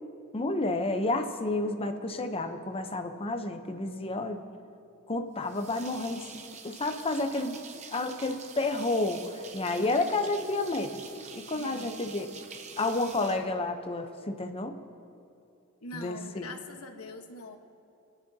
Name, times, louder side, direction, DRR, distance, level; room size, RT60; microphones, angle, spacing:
voice 1, 0.3-4.4 5.1-7.6 7.9-11.0 11.3-12.3 12.8-14.8 15.9-16.5, left 2 dB, 25° left, 7 dB, 0.7 m, -30 dB
sound 1, 5.4-14.2, right 5 dB, 30° right, 0.8 m, -47 dB
voice 2, 9.8-10.1 11.6-12.0 15.8-17.6, left 3 dB, 80° left, 4 dB, 1.2 m, -43 dB
26.5 x 10.5 x 2.8 m, 2.6 s
head